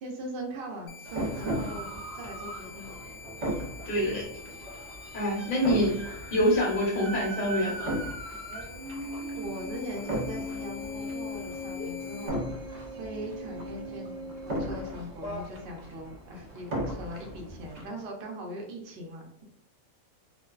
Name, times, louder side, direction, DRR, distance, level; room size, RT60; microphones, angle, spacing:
voice 1, 0.0-2.9 9.4-19.4, right 1 dB, 60° right, 1 dB, 0.7 m, -40 dB
sound 1, 0.9-12.3, left 4 dB, 80° left, 0.4 m, -48 dB
sound 2, 1.0-17.8, equal, 75° right, 0.4 m, -36 dB
voice 2, 3.9-4.2 5.1-6.0 6.3-7.9, equal, 45° left, -2 dB, 0.9 m, -25 dB
2.5 x 2.3 x 2.3 m, 0.72 s
omnidirectional pair, 1.4 m